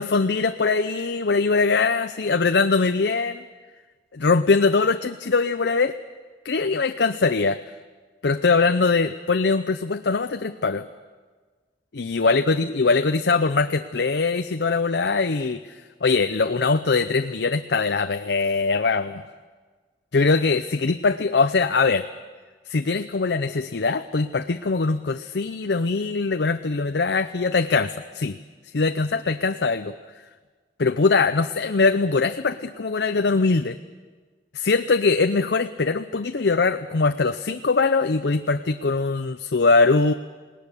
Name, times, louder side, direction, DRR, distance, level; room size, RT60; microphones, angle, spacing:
voice 1, 0.0-3.4 4.1-6.0 6.5-7.6 8.2-10.9 12.0-19.2 20.1-22.1 22.7-28.4 28.7-30.0 30.8-33.8 34.5-40.1, left 4 dB, 75° left, 9 dB, 0.7 m, -22 dB
20.5 x 18.5 x 9.8 m, 1.4 s
head